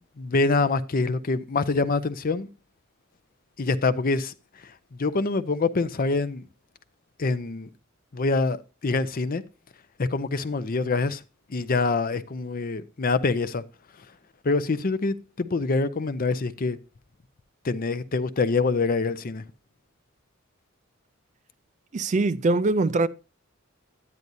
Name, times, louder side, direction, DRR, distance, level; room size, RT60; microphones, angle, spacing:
voice 1, 0.2-2.5 3.6-4.3 5.0-6.4 7.2-7.7 8.1-9.4 10.0-11.2 11.5-13.6 14.4-16.8 17.6-19.4, left 3 dB, 45° left, 0.6 m, -25 dB
voice 2, 21.9-23.1, right 3 dB, 35° right, 0.4 m, -22 dB
10.5 x 9.6 x 2.6 m
head